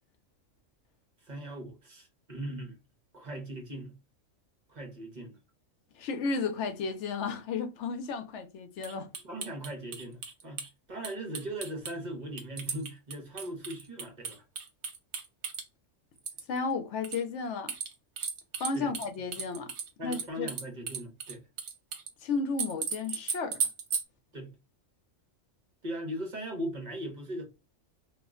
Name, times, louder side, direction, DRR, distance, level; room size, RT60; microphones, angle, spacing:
voice 1, 1.3-2.8 3.1-3.9 4.7-5.4 9.2-10.6 10.9-14.4 18.7-18.9 20.0-21.4 24.3-24.5 25.8-27.4, right 1 dB, 40° right, 0.8 m, -39 dB
voice 2, 6.0-9.1 16.5-17.7 18.6-19.7 20.0-20.5 22.2-23.6, left 4 dB, 70° left, 0.8 m, -33 dB
sound 1, 8.8-10.7 11.0-11.9 12.4-15.6 16.2-16.6 17.0-17.2 17.7-19.1 19.3-22.1 22.6-24.0, right 6 dB, 65° right, 1.0 m, -35 dB
2.4 x 2.1 x 3.5 m
omnidirectional pair, 1.3 m